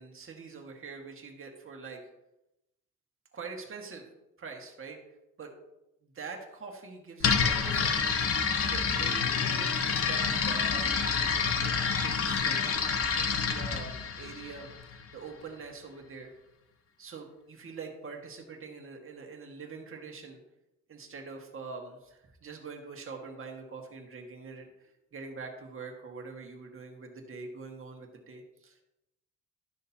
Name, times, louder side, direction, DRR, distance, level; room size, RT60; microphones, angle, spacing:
voice 1, 0.0-2.0 3.3-4.1 4.4-5.0 5.4-5.5 6.0-8.4 8.7-10.9 11.6-14.7 15.1-16.3 17.0-20.4 20.9-28.8, right 4 dB, 45° right, 2 dB, 1.7 m, -44 dB
sound 1, 7.2-15.0, left 6 dB, 50° left, 1.0 m, -28 dB
12.0 x 6.5 x 2.8 m, 0.90 s
cardioid pair, 90°, 30 cm